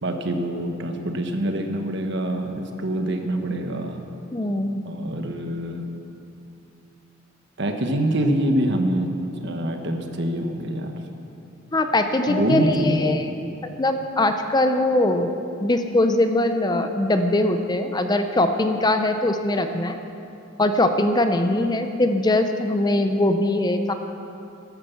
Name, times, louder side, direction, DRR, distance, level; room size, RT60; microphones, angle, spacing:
voice 1, 0.0-4.0 4.8-5.8 7.6-9.1 9.4-10.9 12.3-13.2, right 1 dB, 60° right, 5 dB, 1.3 m, -25 dB
voice 2, 4.3-4.8 11.7-13.5 13.8-15.3 15.6-20.0 20.6-23.9, left 1 dB, 20° left, 7 dB, 0.6 m, -21 dB
13.5 x 11.0 x 7.0 m, 2.7 s
head